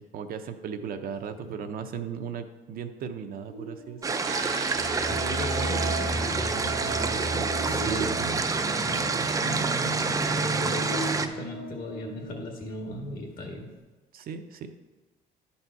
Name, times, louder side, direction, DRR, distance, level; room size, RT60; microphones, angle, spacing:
voice 1, 0.1-4.0 7.7-8.4 14.1-14.7, right 7 dB, 60° right, 7 dB, 0.7 m, -36 dB
Buzz, 3.5-12.9, right 2 dB, 85° left, 1.0 m, -42 dB
sound 1, 4.0-11.3, right 4 dB, 20° right, 0.5 m, -28 dB
sound 2, 4.2-10.3, right 3 dB, 80° right, 1.1 m, -35 dB
voice 2, 5.1-8.4 8.7-13.7, left 1 dB, 55° left, 1 dB, 2.0 m, -37 dB
11.0 x 4.2 x 4.6 m, 1.2 s
cardioid pair, 110°, 17 cm